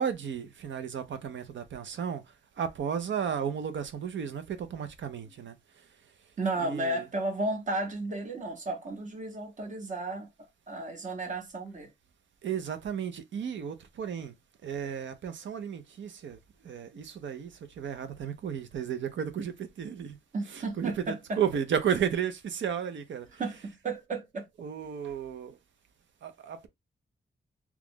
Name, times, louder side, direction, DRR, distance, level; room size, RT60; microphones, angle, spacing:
voice 1, 0.0-5.9 6.6-7.1 12.4-14.3 14.6-20.2 20.5-23.4 24.6-25.6 26.2-26.7, right 8 dB, 75° right, 0.6 m, -34 dB
voice 2, 6.4-10.3 10.7-11.9 20.3-21.4 23.4-24.5, right 2 dB, 40° right, 0.9 m, -33 dB
3.0 x 2.3 x 3.5 m
wide cardioid pair, 165°, 19 cm